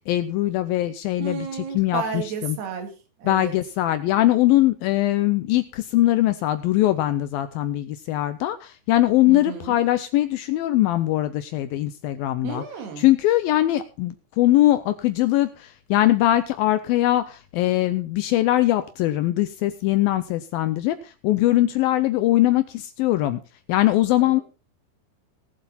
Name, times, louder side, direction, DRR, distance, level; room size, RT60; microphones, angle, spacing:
voice 1, 0.1-2.6 3.2-12.6 13.0-23.4 23.7-24.4, left 15 dB, 80° left, 11 dB, 2.2 m, -21 dB
voice 2, 1.2-2.9 3.2-3.5 9.3-9.8 12.4-13.1 24.2-24.4, right 6 dB, 75° right, 4 dB, 4.3 m, -32 dB
19.0 x 7.7 x 4.2 m, 0.33 s
omnidirectional pair, 4.7 m